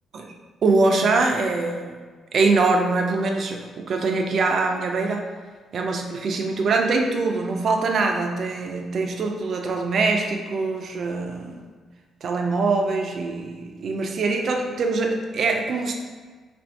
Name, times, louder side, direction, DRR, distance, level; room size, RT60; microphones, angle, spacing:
voice 1, 0.6-2.0 2.3-5.3 5.7-11.6 12.2-15.9, right 3 dB, 55° right, 2 dB, 0.5 m, -23 dB
3.2 x 2.6 x 4.4 m, 1.5 s
cardioid pair, 90°, 0 cm